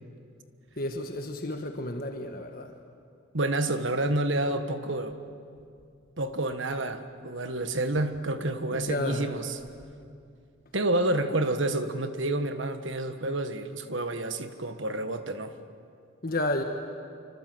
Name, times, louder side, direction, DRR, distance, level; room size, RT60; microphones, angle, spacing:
voice 1, 0.8-2.7 8.7-9.3 16.2-16.6, left 1 dB, 45° left, 4 dB, 1.4 m, -31 dB
voice 2, 3.3-5.2 6.2-9.6 10.7-15.5, right 2 dB, 70° right, 9 dB, 1.5 m, -29 dB
27.0 x 25.0 x 7.8 m, 2.4 s
head